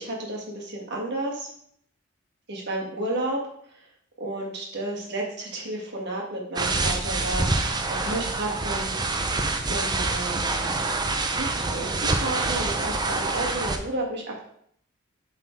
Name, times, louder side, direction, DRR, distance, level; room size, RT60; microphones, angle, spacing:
voice 1, 0.0-1.5 2.5-3.4 4.2-8.9 9.6-10.8 11.3-11.9 12.1-14.5, right 2 dB, 60° right, -2 dB, 1.8 m, -32 dB
sound 1, 6.6-13.8, right 3 dB, 20° right, 0.6 m, -26 dB
7.5 x 4.1 x 4.5 m, 0.67 s
head